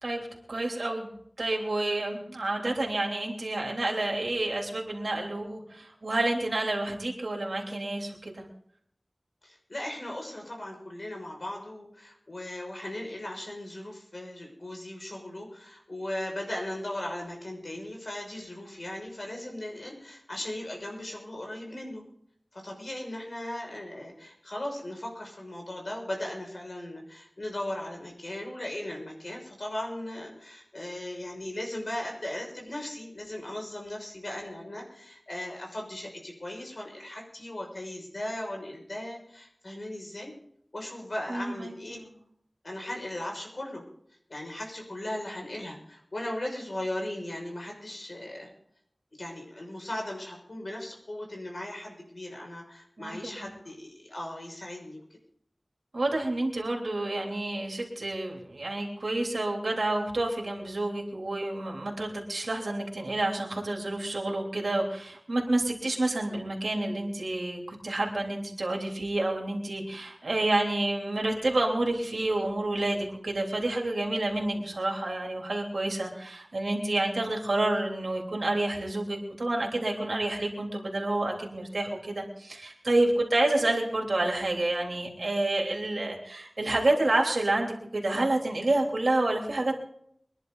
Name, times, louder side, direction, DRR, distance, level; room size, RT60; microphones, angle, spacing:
voice 1, 0.0-1.1 1.4-8.4 41.3-42.1 53.0-53.5 55.9-89.7, right 2 dB, 85° right, 0 dB, 3.3 m, -29 dB
voice 2, 9.4-22.0 22.5-40.3 40.7-42.0 42.6-43.8 44.3-48.5 49.2-55.0, left 1 dB, 65° left, 0 dB, 6.1 m, -37 dB
24.0 x 11.0 x 4.0 m, 0.69 s
wide cardioid pair, 45°, 0 cm